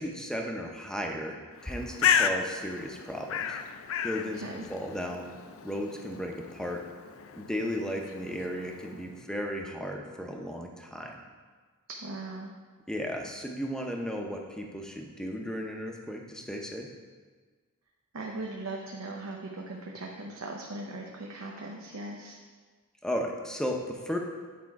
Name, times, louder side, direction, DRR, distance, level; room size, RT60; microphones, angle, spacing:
voice 1, 0.0-3.6 4.0-4.4 4.7-5.3 5.6-6.8 7.4-11.2 12.9-16.9 23.0-24.2, equal, 5° left, 1 dB, 0.6 m, -35 dB
Bird, 1.6-9.2, left 7 dB, 65° left, 0.4 m, -33 dB
voice 2, 4.3-4.7 12.0-12.5 18.1-22.4, right 2 dB, 75° right, -1 dB, 0.7 m, -39 dB
8.5 x 4.2 x 4.7 m, 1.5 s
head